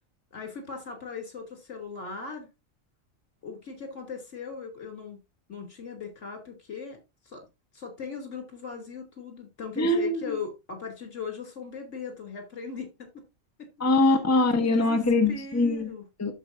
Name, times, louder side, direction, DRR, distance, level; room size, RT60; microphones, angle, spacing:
voice 1, 0.3-2.5 3.4-5.2 5.5-7.0 7.2-7.4 7.7-13.1 13.6-13.9 14.6-15.0 15.3-16.0, left 5 dB, 60° left, 3.2 m, -38 dB
voice 2, 9.8-10.4 13.8-15.9 16.2-16.3, left 2 dB, 10° left, 1.1 m, -23 dB
13.5 x 5.0 x 2.6 m
omnidirectional pair, 1.4 m